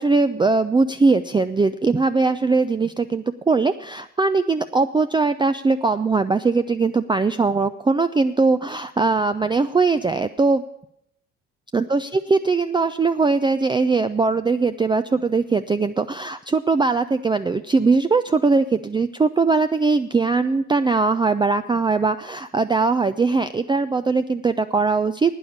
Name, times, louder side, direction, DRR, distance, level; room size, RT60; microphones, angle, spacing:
voice 1, 0.0-10.6 11.7-25.3, right 4 dB, 15° right, 10 dB, 0.4 m, -20 dB
11.5 x 9.2 x 7.1 m, 0.77 s
hypercardioid pair, 50°, 36 cm